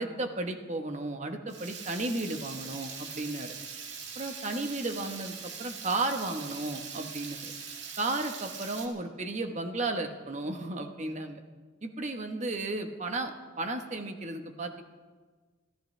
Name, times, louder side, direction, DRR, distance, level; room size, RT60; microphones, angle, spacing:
voice 1, 0.0-3.5 4.1-7.5 8.0-11.4 11.8-14.8, right 2 dB, 40° right, 5 dB, 1.2 m, -34 dB
Water tap faucet / Liquid, 1.5-8.9, right 6 dB, 65° right, 2.2 m, -42 dB
26.0 x 15.0 x 3.3 m, 1.4 s
head